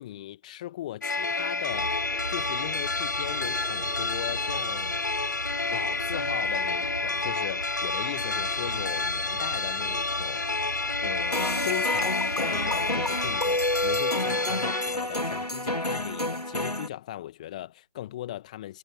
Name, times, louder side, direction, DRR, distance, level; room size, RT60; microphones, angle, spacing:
voice 1, 0.0-5.0 5.7-10.5 11.0-12.2 12.5-18.8, left 13 dB, 10° left, 1.9 m, -38 dB
sound 1, 1.0-15.0, left 3 dB, 30° left, 0.7 m, -29 dB
sound 2, 1.7-14.0, right 1 dB, 75° right, 5.4 m, -39 dB
sound 3, 11.3-16.9, left 1 dB, 80° left, 3.1 m, -29 dB
figure-of-eight pair, 160°, 20 cm